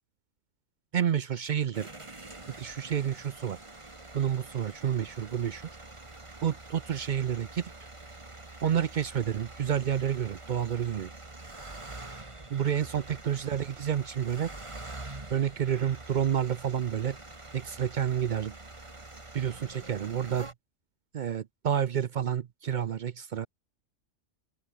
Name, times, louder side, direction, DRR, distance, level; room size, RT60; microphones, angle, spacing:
voice 1, 0.9-1.9 2.6-3.6 4.1-5.7 6.4-7.7 8.6-11.1 12.5-14.5 15.3-17.2 17.5-18.6 19.3-20.5 21.1-23.5, right 8 dB, 60° right, 0.5 m, -29 dB
sound 1, 1.7-20.5, right 2 dB, 20° right, 1.9 m, -46 dB
open air
omnidirectional pair, 1.4 m